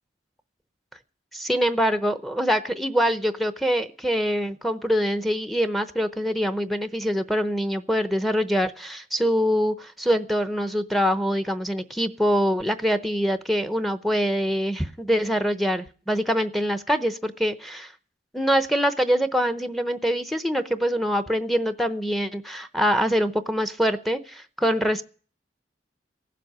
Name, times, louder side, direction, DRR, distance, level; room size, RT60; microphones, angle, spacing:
voice 1, 1.3-17.9 18.3-25.0, equal, ahead, 10 dB, 0.7 m, -24 dB
16.5 x 7.6 x 9.8 m, 0.41 s
head